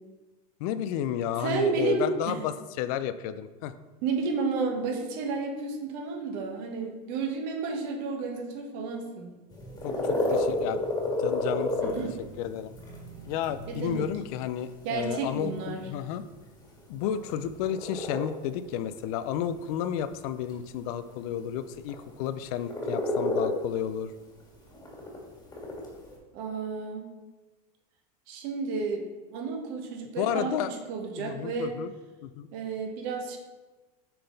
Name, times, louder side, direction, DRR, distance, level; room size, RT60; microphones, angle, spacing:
voice 1, 0.6-3.7 9.8-10.8 11.2-12.0 12.4-12.7 13.3-16.2 16.9-24.1 30.2-30.7 31.2-31.9 32.2-32.5, left 10 dB, 65° left, 12 dB, 0.4 m, -32 dB
voice 2, 1.4-2.4 4.0-9.3 11.8-12.1 13.7-14.1 14.8-15.8 26.3-27.1 28.3-29.0 29.3-30.5 30.9-31.7 32.5-33.4, right 4 dB, 60° right, 2 dB, 1.3 m, -31 dB
sound 1, 9.5-26.2, left 2 dB, 20° left, 1.7 m, -33 dB
6.7 x 3.8 x 3.9 m, 1.2 s
supercardioid pair, 115°, 20 cm